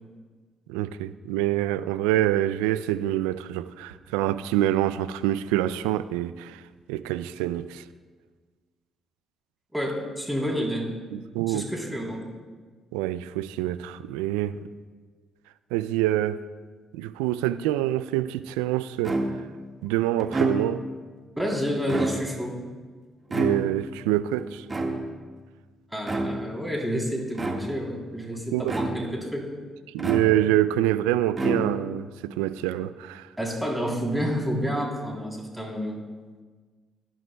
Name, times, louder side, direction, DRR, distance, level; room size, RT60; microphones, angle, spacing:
voice 1, 0.7-6.6 6.9-7.8 11.1-11.7 12.9-14.6 15.7-16.4 16.9-19.2 19.8-20.8 23.3-24.7 28.5-28.7 29.9-33.3, right 13 dB, 85° right, 0.3 m, -26 dB
voice 2, 9.7-10.9 11.5-12.3 21.3-22.6 25.9-29.5 33.4-36.0, equal, 5° right, 3.4 m, -29 dB
sound 1, 19.0-19.6 20.2-21.0 21.8-22.5 23.3-24.0 24.7-25.3 26.0-26.6 27.3-27.9 28.7-29.3 30.0-30.7 31.3-32.0, right 2 dB, 30° right, 1.7 m, -29 dB
18.0 x 11.0 x 2.3 m
hypercardioid pair, 45°, 0 cm